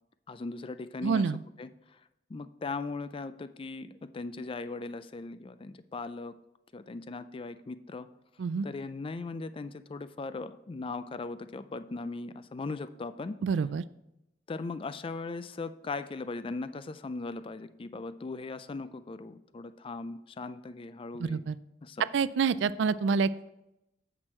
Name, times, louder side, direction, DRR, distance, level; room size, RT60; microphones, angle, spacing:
voice 1, 0.3-1.3 1.6-2.0 2.3-6.3 6.7-8.1 8.6-13.4 14.5-21.4 21.8-22.0, left 3 dB, 30° left, 12 dB, 0.4 m, -39 dB
voice 2, 1.0-1.4 8.4-8.7 13.4-13.8 21.2-21.6 22.1-23.5, right 5 dB, 75° right, 16 dB, 0.3 m, -27 dB
8.0 x 6.0 x 4.3 m, 0.89 s
head